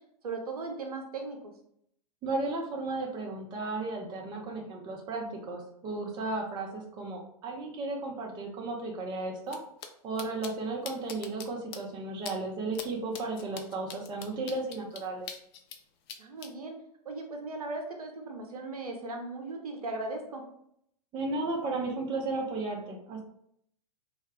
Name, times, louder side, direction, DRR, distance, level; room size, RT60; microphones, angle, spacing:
voice 1, 0.2-1.4 16.2-16.8 17.0-20.4, right 3 dB, 70° right, 4 dB, 0.6 m, -37 dB
voice 2, 2.2-9.6 10.0-15.3 21.1-23.2, right 3 dB, 20° right, 0 dB, 0.5 m, -34 dB
sound 1, 9.5-9.6 9.8-9.9 10.2-10.5 10.9-11.5 11.7-11.8 12.3-12.4 12.7-12.9 13.1-15.8 16.1-16.5, left 7 dB, 40° left, 0.4 m, -41 dB
2.2 x 2.0 x 3.4 m, 0.71 s
figure-of-eight pair, 100°, 20 cm